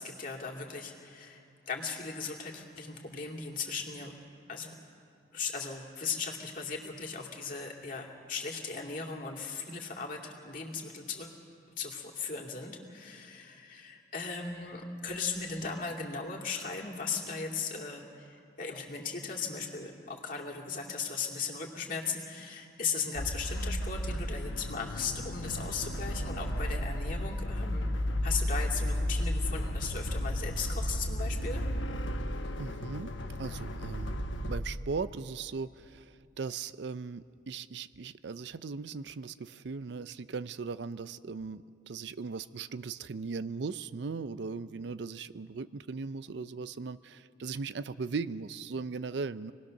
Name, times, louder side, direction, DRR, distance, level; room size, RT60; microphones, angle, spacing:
voice 1, 0.0-4.1 4.5-4.7 5.3-11.3 11.8-27.9 28.2-31.6, left 5 dB, 45° left, -1 dB, 2.5 m, -37 dB
sound 1, 23.1-34.6, equal, 75° left, 1.0 m, -33 dB
voice 2, 32.6-49.5, right 4 dB, 60° right, 14 dB, 0.4 m, -38 dB
26.0 x 19.0 x 6.5 m, 2.6 s
head